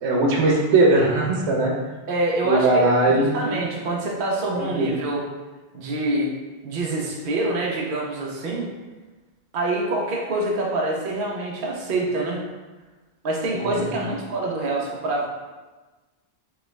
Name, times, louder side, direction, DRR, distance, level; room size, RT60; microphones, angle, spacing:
voice 1, 0.0-1.7 2.4-3.6 4.5-4.9 13.5-13.9, right 2 dB, 80° right, -1 dB, 1.0 m, -20 dB
voice 2, 2.1-5.2 5.7-6.3 6.6-8.7 9.5-12.4 13.2-15.3, right 2 dB, 55° right, -2 dB, 0.8 m, -26 dB
3.5 x 3.2 x 3.1 m, 1.2 s
omnidirectional pair, 1.1 m